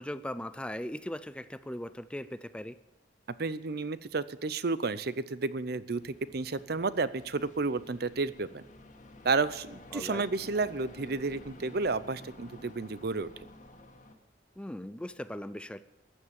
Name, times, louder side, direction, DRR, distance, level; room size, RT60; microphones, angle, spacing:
voice 1, 0.0-2.7 9.9-10.2 14.6-15.8, left 1 dB, 5° left, 13 dB, 0.5 m, -39 dB
voice 2, 3.4-8.6 9.2-13.3, right 3 dB, 60° right, 16 dB, 0.7 m, -31 dB
sound 1, 5.9-14.1, left 1 dB, 45° left, 1.8 m, -52 dB
14.5 x 10.0 x 7.1 m, 1.0 s
head